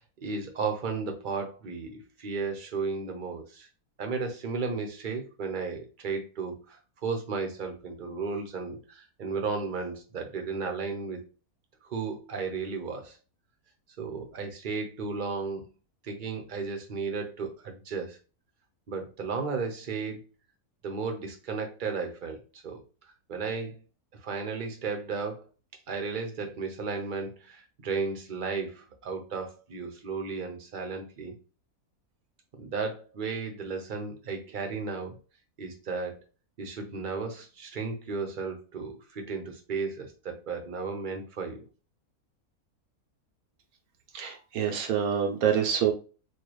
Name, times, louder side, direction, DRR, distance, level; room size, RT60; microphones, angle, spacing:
voice 1, 0.2-3.7 4.0-11.2 11.9-13.2 14.0-15.6 16.0-18.2 18.9-20.2 20.8-22.4 22.6-22.8 23.3-23.8 24.2-25.5 25.9-31.4 32.6-35.2 35.6-36.2 36.6-41.6, right 4 dB, 40° right, 3 dB, 0.8 m, -34 dB
voice 2, 44.1-45.9, right 8 dB, 75° right, 4 dB, 1.1 m, -26 dB
4.4 x 2.4 x 3.0 m, 0.35 s
omnidirectional pair, 1.6 m